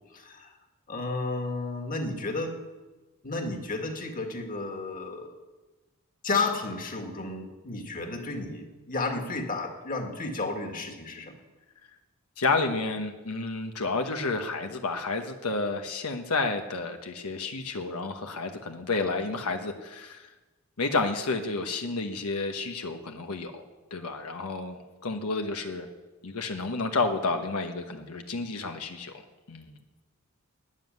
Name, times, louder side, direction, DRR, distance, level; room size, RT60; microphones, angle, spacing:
voice 1, 0.1-0.5 0.9-2.6 3.2-5.4 6.2-11.3, left 3 dB, 40° left, 4 dB, 2.0 m, -32 dB
voice 2, 12.4-20.3 20.8-23.6 23.9-25.9 26.2-29.1 29.5-29.7, left 3 dB, 85° left, 5 dB, 1.1 m, -30 dB
13.0 x 9.7 x 9.4 m, 1.2 s
head